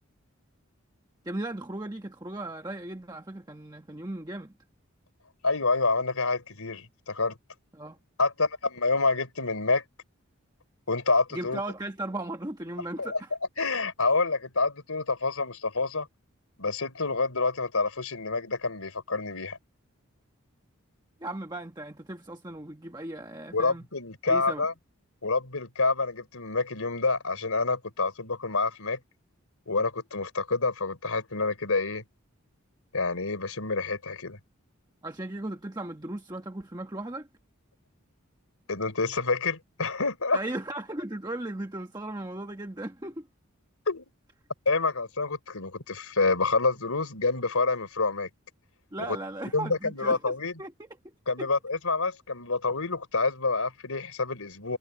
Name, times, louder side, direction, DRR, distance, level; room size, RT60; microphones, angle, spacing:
voice 1, 1.2-4.5 7.7-8.0 11.3-13.3 21.2-23.8 24.3-24.7 35.0-37.3 40.3-43.3 48.9-50.7 51.4-51.5, right 1 dB, 20° right, 1.2 m, -37 dB
voice 2, 5.4-7.4 8.2-9.8 10.9-11.6 13.0-13.2 13.6-16.1 16.6-19.6 23.5-24.7 25.2-29.0 29.7-32.0 32.9-34.4 38.7-40.4 43.9-44.0 44.7-48.3 49.1-49.2 49.5-50.5 51.3-54.8, left 3 dB, 85° left, 3.6 m, -27 dB
head